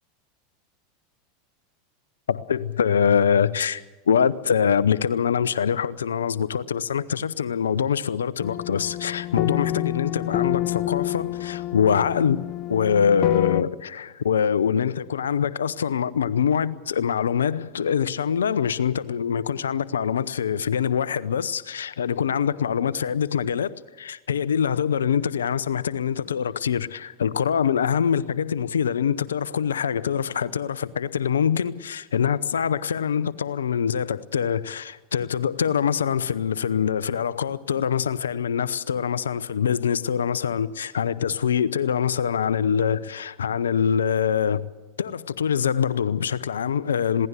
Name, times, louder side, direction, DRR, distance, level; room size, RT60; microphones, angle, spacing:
voice 1, 2.3-12.4 12.7-23.7 24.0-44.7 45.0-47.3, left 7 dB, 85° left, 0.8 m, -24 dB
sound 1, 8.4-13.6, left 15 dB, 45° left, 0.6 m, -28 dB
21.5 x 17.0 x 8.3 m
hypercardioid pair, 90°, 0 cm